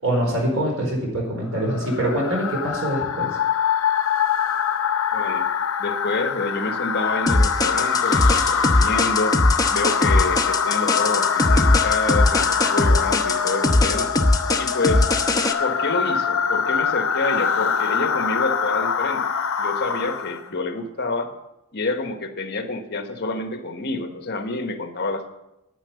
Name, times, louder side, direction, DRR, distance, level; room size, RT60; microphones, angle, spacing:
voice 1, 0.0-3.3, right 1 dB, 75° right, 0 dB, 4.5 m, -24 dB
sound 1, 1.6-20.5, left 7 dB, 75° left, 0.8 m, -24 dB
voice 2, 5.1-5.5 5.8-9.4 9.7-14.1 14.6-15.1 15.6-19.3 19.6-21.3 21.7-25.3, left 3 dB, 55° left, 7 dB, 1.3 m, -28 dB
sound 2, 7.3-15.5, left 2 dB, 20° left, 0.9 m, -20 dB
10.5 x 10.0 x 7.0 m, 0.91 s
head